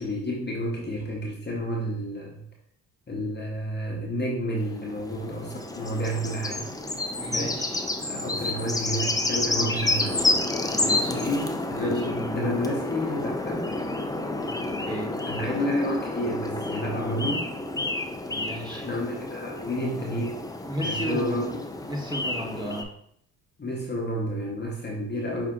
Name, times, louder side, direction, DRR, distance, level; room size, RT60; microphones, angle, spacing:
voice 1, 0.0-2.4 3.1-6.6 7.3-7.6 8.0-10.2 11.1-13.7 15.2-17.5 18.7-20.5 20.8-21.6 23.6-25.5, equal, 25° left, -1 dB, 1.0 m, -30 dB
sound 1, 4.6-22.8, left 2 dB, 10° left, 0.5 m, -30 dB
voice 2, 7.2-7.8 10.7-11.2 11.7-11.9 14.4-15.1 18.3-18.9 20.7-21.5 21.9-22.9, right 1 dB, 10° right, 0 dB, 1.4 m, -34 dB
5.5 x 2.5 x 3.8 m, 0.68 s
hypercardioid pair, 55°, 43 cm